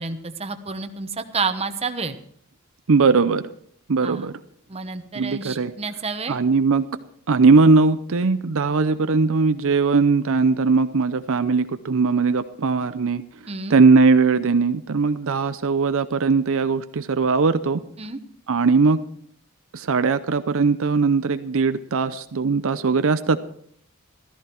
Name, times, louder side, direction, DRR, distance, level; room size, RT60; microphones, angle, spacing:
voice 1, 0.0-2.2 4.0-4.3 4.7-6.4 13.5-13.8 18.0-18.2, right 4 dB, 30° right, 8 dB, 1.0 m, -29 dB
voice 2, 2.9-3.4 3.9-4.3 5.2-5.7 6.3-6.9 7.3-13.2 13.7-17.8 18.5-19.0 19.7-23.4, right 4 dB, 65° right, 11 dB, 0.6 m, -19 dB
14.0 x 14.0 x 4.5 m, 0.64 s
head